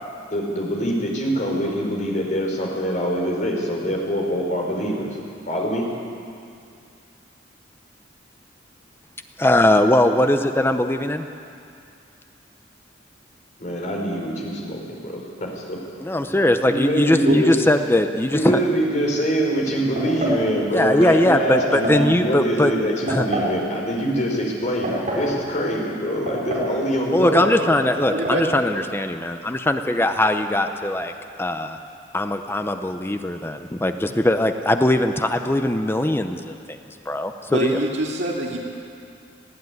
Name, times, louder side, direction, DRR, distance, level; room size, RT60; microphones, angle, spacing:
voice 1, 0.3-5.2 5.5-5.9 13.6-15.8 16.7-17.5 18.3-27.6, equal, 40° left, -1 dB, 4.3 m, -24 dB
voice 2, 9.4-11.2 16.0-18.6 20.7-22.7 23.1-23.2 27.1-31.1 31.4-31.8 32.1-36.8 37.1-37.8, left 1 dB, 10° left, 7 dB, 0.7 m, -20 dB
sound 1, 20.0-20.4 21.6-22.1 23.1-23.6 24.6-25.3 26.3-26.8 27.0-27.1 28.0-28.4, right 1 dB, 40° right, 5.8 m, -26 dB
voice 3, 28.1-28.4 37.5-38.6, right 1 dB, 65° right, -3 dB, 2.4 m, -24 dB
20.0 x 15.0 x 9.5 m, 2.4 s
head